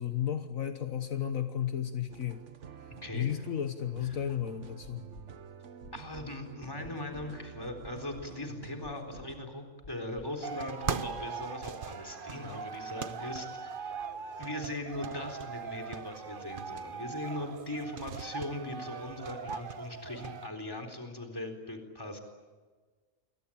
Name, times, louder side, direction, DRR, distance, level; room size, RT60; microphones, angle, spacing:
voice 1, 0.0-2.4 2.8-5.0, left 10 dB, 70° left, 8 dB, 1.6 m, -33 dB
sound 1, 2.1-9.4, right 6 dB, 60° right, 1.4 m, -49 dB
sound 2, 4.8-5.3 5.8-6.3 6.8-7.3 7.8-8.3 8.8-9.3 9.8-10.3 10.8-11.3 11.8-11.9, left 4 dB, 40° left, 1.2 m, -51 dB
voice 2, 5.9-14.0 14.4-22.2, left 1 dB, 15° left, 3 dB, 4.0 m, -40 dB
sound 3, 10.4-20.5, right 6 dB, 40° right, 1.1 m, -40 dB
29.5 x 22.5 x 8.8 m, 1.4 s
omnidirectional pair, 1.4 m